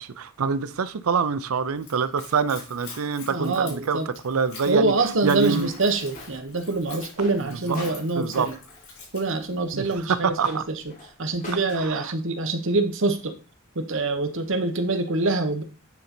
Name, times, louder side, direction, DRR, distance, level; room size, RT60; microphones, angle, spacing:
voice 1, 0.0-4.9 5.2-5.7 7.4-7.9 8.2-8.5 9.7-10.6 11.8-12.1, right 5 dB, 90° right, 0.5 m, -26 dB
Splash splatter / Trickle dribble, 1.7-10.1, left 4 dB, 85° left, 4.3 m, -46 dB
voice 2, 3.3-4.1 4.7-8.5 9.1-10.6 11.2-13.4 13.7-15.6, right 3 dB, 65° right, 1.1 m, -25 dB
sound 1, 5.0-11.9, left 1 dB, 40° left, 2.5 m, -44 dB
9.6 x 3.9 x 4.3 m
head